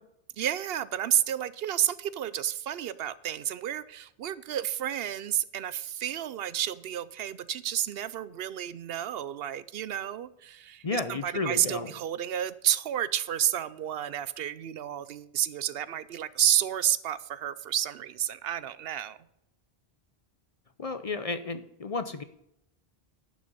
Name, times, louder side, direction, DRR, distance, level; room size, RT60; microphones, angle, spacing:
voice 1, 0.4-19.2, right 10 dB, 75° right, 16 dB, 0.8 m, -30 dB
voice 2, 10.8-11.9 20.8-22.2, left 3 dB, 40° left, 10 dB, 0.6 m, -32 dB
11.0 x 6.2 x 5.5 m, 0.79 s
omnidirectional pair, 1.0 m